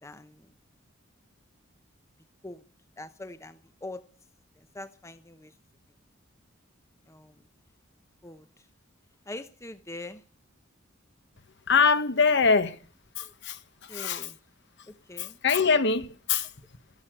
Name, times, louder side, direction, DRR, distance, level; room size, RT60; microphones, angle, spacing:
voice 1, 0.0-0.4 2.4-2.6 3.0-4.0 4.7-5.5 7.1-7.3 8.2-8.4 9.3-10.2 13.9-14.3 15.1-15.4, left 2 dB, 15° left, 0.7 m, -42 dB
voice 2, 11.7-12.7 13.2-13.5 13.9-14.3 15.2-16.5, left 5 dB, 60° left, 1.2 m, -23 dB
13.5 x 11.0 x 7.7 m
head